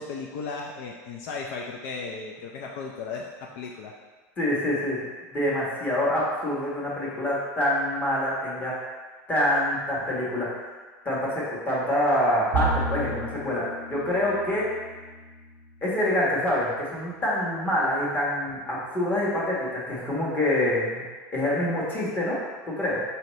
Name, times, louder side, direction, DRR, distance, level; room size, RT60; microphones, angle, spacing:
voice 1, 0.0-3.9, left 4 dB, 65° left, -1 dB, 0.4 m, -35 dB
voice 2, 4.4-5.0 5.3-8.8 9.3-10.6 11.0-14.7 15.8-21.0 21.3-22.4 22.7-23.0, left 1 dB, 20° left, -6 dB, 1.3 m, -26 dB
Bowed string instrument, 12.5-16.0, right 2 dB, 60° right, 0.6 m, -33 dB
5.4 x 2.8 x 3.1 m, 1.4 s
supercardioid pair, 140°, 8 cm